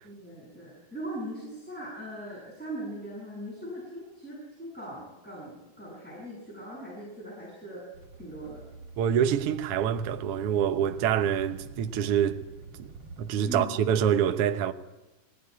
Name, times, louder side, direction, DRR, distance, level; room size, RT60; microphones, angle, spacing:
voice 1, 0.0-7.8 8.2-8.6 13.5-13.8, right 1 dB, ahead, 7.5 m, -40 dB
sound 1, 7.9-13.5, right 4 dB, 35° right, 4.5 m, -46 dB
voice 2, 9.0-12.5 12.8-12.9 13.2-14.7, right 9 dB, 75° right, 1.3 m, -26 dB
21.0 x 18.0 x 9.7 m
omnidirectional pair, 4.1 m